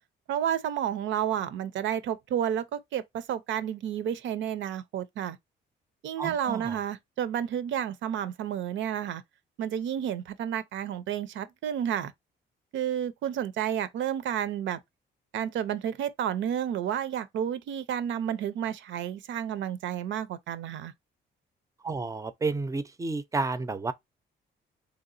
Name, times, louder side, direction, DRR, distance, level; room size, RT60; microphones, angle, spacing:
voice 1, 0.3-5.4 6.0-9.2 9.6-12.1 12.7-14.8 15.3-20.9, right 9 dB, 70° right, 0.5 m, -31 dB
voice 2, 6.2-6.8 21.8-23.9, right 3 dB, 15° right, 0.4 m, -31 dB
3.4 x 2.8 x 2.5 m
cardioid pair, 90°, 20 cm